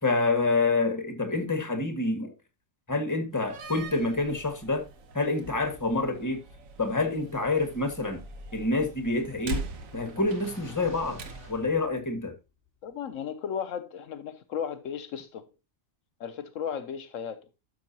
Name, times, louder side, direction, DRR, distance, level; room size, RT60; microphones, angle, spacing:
voice 1, 0.0-2.3 2.9-4.8 5.1-6.4 6.8-8.2 8.5-9.6 9.9-11.2 11.5-12.3, left 3 dB, 15° left, 1.6 m, -27 dB
Slam, 3.3-11.7, right 2 dB, 85° right, 1.5 m, -42 dB
sound 1, 5.4-12.4, left 3 dB, 45° right, 5.3 m, -50 dB
voice 2, 12.8-15.4 16.2-17.5, left 8 dB, 75° left, 1.0 m, -35 dB
12.0 x 6.3 x 2.8 m
omnidirectional pair, 1.4 m